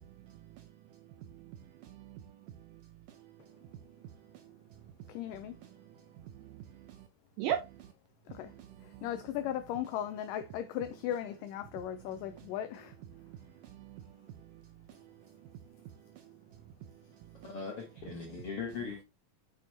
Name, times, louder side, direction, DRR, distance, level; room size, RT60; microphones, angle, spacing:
voice 1, 0.0-1.0 1.3-2.8 3.1-3.5 4.3-4.5 5.7-5.9 6.2-7.1 7.4-7.9 8.4-9.1 13.1-14.6 14.9-15.3 16.1-16.2 17.2-17.6 18.2-18.4, right 10 dB, 80° right, 1.9 m, -43 dB
voice 2, 5.1-5.6 8.3-8.5 9.0-12.9, left 11 dB, 85° left, 1.9 m, -37 dB
voice 3, 17.4-19.0, left 5 dB, 70° left, 1.4 m, -39 dB
6.9 x 6.4 x 2.8 m
omnidirectional pair, 4.4 m